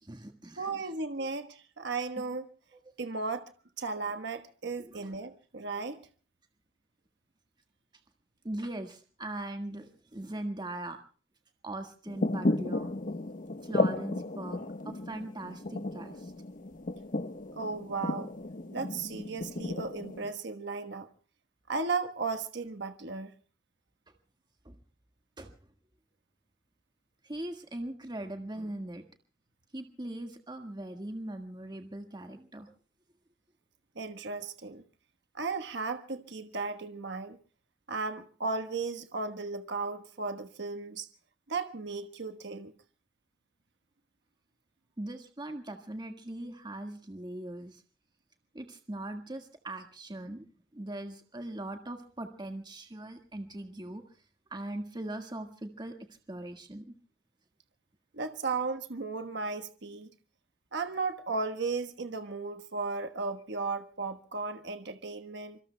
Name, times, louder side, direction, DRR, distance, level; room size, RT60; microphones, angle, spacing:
voice 1, 0.0-0.9 1.2-1.3 2.2-2.3 4.8-5.2 8.4-11.0 11.6-12.9 13.6-16.3 24.6-24.8 25.4-25.5 27.2-29.0 29.7-32.7 45.0-47.8 48.5-50.4 50.7-54.0 54.5-55.9 56.3-56.9, right 1 dB, 25° right, 1.6 m, -40 dB
voice 2, 0.6-2.5 3.0-3.5 3.8-6.1 17.5-18.3 18.7-21.1 21.7-23.3 34.0-34.8 35.3-37.4 37.9-41.1 41.5-42.7 58.1-60.1 60.7-65.6, right 4 dB, 60° right, 1.3 m, -35 dB
sound 1, 12.1-20.3, left 2 dB, 45° left, 1.2 m, -34 dB
26.5 x 24.5 x 2.2 m
head